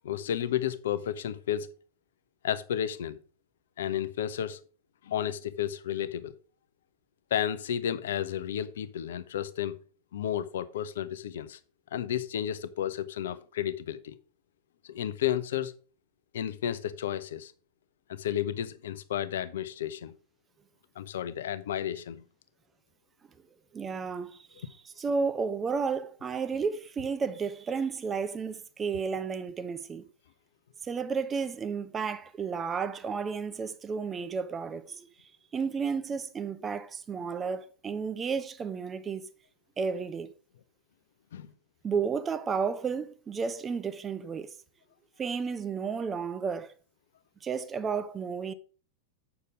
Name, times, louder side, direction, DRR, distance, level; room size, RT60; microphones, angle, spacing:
voice 1, 0.0-1.7 2.4-3.2 3.8-4.6 5.0-6.3 7.3-9.8 10.1-11.6 11.9-14.1 14.8-15.7 16.3-17.5 18.1-20.1 21.0-22.2 41.3-41.5, left 10 dB, 60° left, 0.7 m, -32 dB
voice 2, 23.7-24.6 25.0-30.1 30.8-35.1 35.5-39.3 39.8-40.3 41.8-44.5 45.2-46.7 47.4-48.5, right 5 dB, 20° right, 0.9 m, -32 dB
8.3 x 6.8 x 4.9 m
figure-of-eight pair, 90°, 0 cm